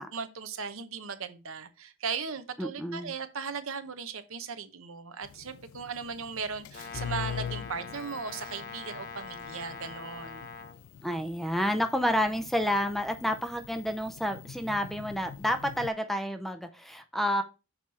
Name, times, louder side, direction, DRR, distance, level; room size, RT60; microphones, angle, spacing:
voice 1, 0.1-10.5, right 5 dB, 70° right, 0.9 m, -37 dB
voice 2, 2.6-3.1 11.0-17.4, equal, ahead, 0.5 m, -29 dB
sound 1, 5.2-15.9, left 7 dB, 75° left, 0.3 m, -44 dB
Brass instrument, 6.7-10.8, left 5 dB, 40° left, 0.7 m, -43 dB
6.6 x 4.7 x 4.2 m
head